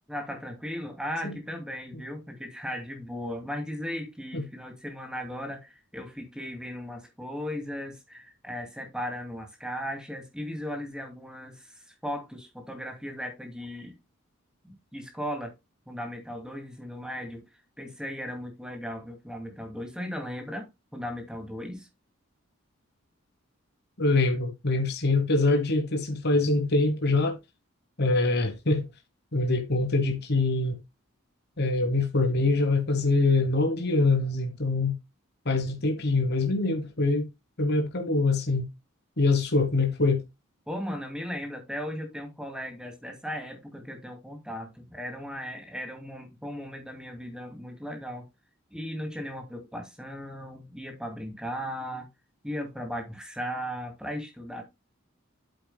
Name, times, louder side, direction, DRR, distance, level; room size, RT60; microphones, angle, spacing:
voice 1, 0.1-14.0 14.6-15.5 15.9-17.5 17.8-21.9 40.7-48.2 48.7-52.1 52.4-54.6, equal, 5° right, 2.4 m, -37 dB
voice 2, 24.0-27.4 28.0-28.9 29.3-30.8 31.6-35.0 35.4-37.3 37.6-38.7 39.2-40.2, left 3 dB, 55° left, 1.3 m, -24 dB
8.3 x 7.8 x 2.2 m
head